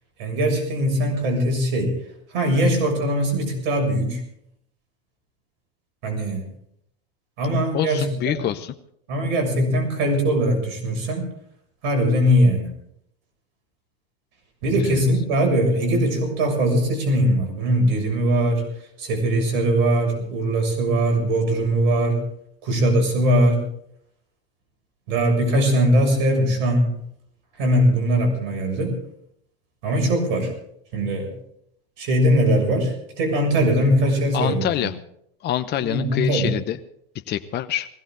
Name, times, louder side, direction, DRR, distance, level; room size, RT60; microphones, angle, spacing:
voice 1, 0.2-2.0 2.3-4.2 6.0-6.4 7.4-8.4 9.1-11.3 11.8-12.7 14.6-18.6 19.0-22.2 22.6-23.6 25.1-27.0 27.6-29.0 29.8-30.5 30.9-31.3 32.0-34.9 35.8-36.5, right 1 dB, 65° right, 4 dB, 7.0 m, -21 dB
voice 2, 7.7-8.7 14.8-15.0 34.3-35.0 35.4-36.8 37.3-37.9, left 12 dB, 35° left, 9 dB, 0.9 m, -26 dB
20.0 x 17.0 x 3.9 m, 0.72 s
hypercardioid pair, 100°, 30 cm